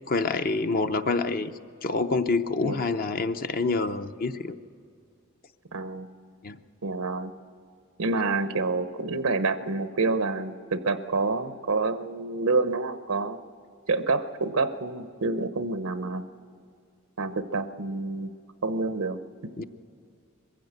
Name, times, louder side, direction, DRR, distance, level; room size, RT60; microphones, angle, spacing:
voice 1, 0.1-1.5 1.8-4.5 6.4-6.6 19.6-19.7, left 3 dB, 45° left, 8 dB, 0.7 m, -27 dB
voice 2, 5.7-6.1 6.8-7.3 8.0-13.4 13.9-16.3 17.2-18.3 18.6-19.2, right 3 dB, 90° right, 11 dB, 0.8 m, -28 dB
22.5 x 15.5 x 8.0 m, 2.4 s
head